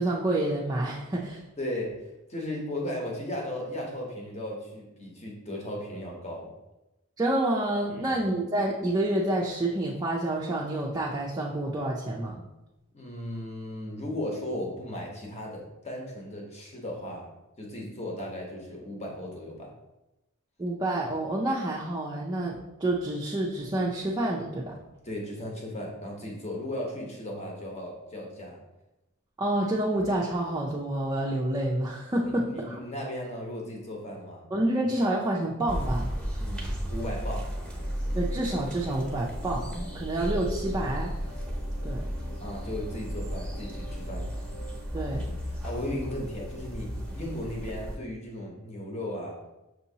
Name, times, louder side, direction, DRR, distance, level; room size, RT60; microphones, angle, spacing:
voice 1, 0.0-1.4 7.2-12.3 20.6-24.7 29.4-32.8 34.5-36.1 38.1-41.1 41.8-42.0 44.9-45.4, right 1 dB, 20° right, -3 dB, 0.4 m, -28 dB
voice 2, 1.6-1.9 2.3-6.5 8.0-8.2 12.9-17.3 17.6-19.7 25.0-28.6 32.2-34.5 36.4-37.5 42.4-44.5 45.5-49.4, left 1 dB, 30° left, -1 dB, 0.9 m, -36 dB
sound 1, 35.7-47.9, equal, 5° left, 1.0 m, -34 dB
sound 2, 37.7-47.3, equal, 70° left, 1.5 m, -49 dB
6.0 x 2.8 x 2.7 m, 0.96 s
head